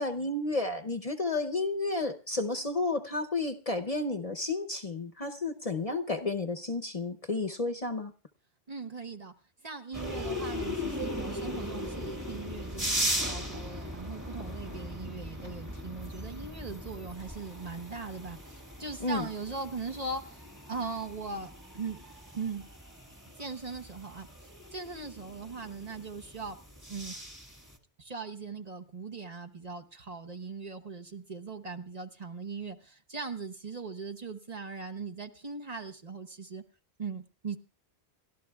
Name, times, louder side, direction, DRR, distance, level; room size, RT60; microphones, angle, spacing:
voice 1, 0.0-8.1 19.0-19.2, left 3 dB, 40° left, 6 dB, 0.8 m, -32 dB
voice 2, 8.7-9.3 9.6-22.0 22.3-22.7 23.4-24.3 24.7-26.6 26.9-27.2 28.0-36.6 37.0-37.6, right 4 dB, 40° right, 6 dB, 1.1 m, -40 dB
sound 1, 9.9-27.8, equal, 15° right, 1.8 m, -38 dB
30.0 x 12.5 x 2.3 m, 0.36 s
omnidirectional pair, 1.1 m